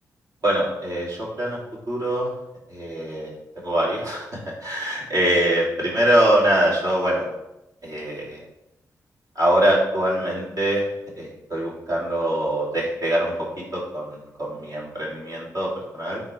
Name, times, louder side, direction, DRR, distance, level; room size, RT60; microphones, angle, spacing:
voice 1, 0.4-1.6 1.9-2.3 2.7-3.3 3.6-7.2 7.8-8.4 9.4-10.8 11.2-13.3 13.7-16.2, right 1 dB, 65° right, -4 dB, 2.5 m, -23 dB
9.5 x 3.9 x 3.2 m, 0.91 s
cardioid pair, 65°, 7 cm